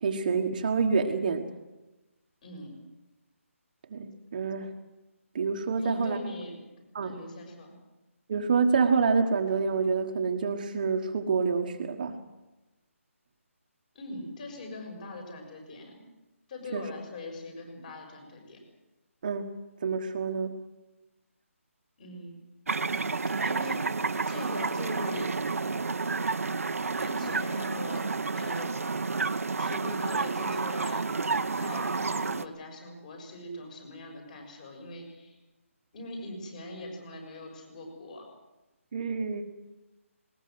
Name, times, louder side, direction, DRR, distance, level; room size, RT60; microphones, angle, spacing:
voice 1, 0.0-1.5 3.9-4.8 5.3-6.2 6.9-7.1 8.3-12.2 16.7-16.9 19.2-19.5 19.8-20.6 38.9-39.4, right 5 dB, 35° right, 4 dB, 1.4 m, -27 dB
voice 2, 5.8-6.5 7.0-7.7 13.9-16.1 16.5-18.6 22.0-22.4 23.4-23.9 24.3-25.3 27.0-28.0 28.3-28.7 29.6-31.0 31.5-35.4 35.9-38.2, left 1 dB, 30° left, 3 dB, 6.5 m, -41 dB
sound 1, 22.7-32.5, right 4 dB, 80° right, 1.0 m, -30 dB
20.0 x 20.0 x 7.9 m, 1.0 s
hypercardioid pair, 170°, 8 cm